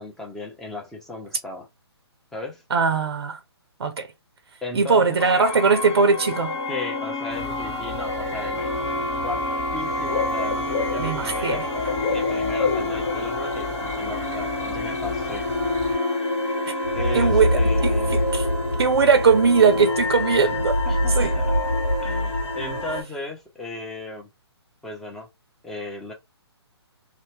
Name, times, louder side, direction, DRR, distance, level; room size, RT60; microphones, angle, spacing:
voice 1, 0.0-1.7 2.3-2.6 4.6-5.2 6.7-8.7 9.2-9.4 9.7-11.6 12.1-15.5 16.9-18.3 20.9-21.6 22.0-24.3 24.8-25.3 25.6-26.1, left 2 dB, ahead, 0.6 m, -35 dB
voice 2, 2.7-3.4 3.8-4.1 4.7-6.6 11.0-11.7 16.7-16.8 17.1-17.9 18.3-18.4 18.8-20.8 21.2-21.3, right 5 dB, 60° right, 0.5 m, -20 dB
sound 1, 5.2-23.0, left 1 dB, 75° left, 1.0 m, -26 dB
Bird / Cricket, 7.3-15.9, left 5 dB, 35° left, 1.5 m, -32 dB
2.7 x 2.1 x 3.1 m
figure-of-eight pair, 135°, 14 cm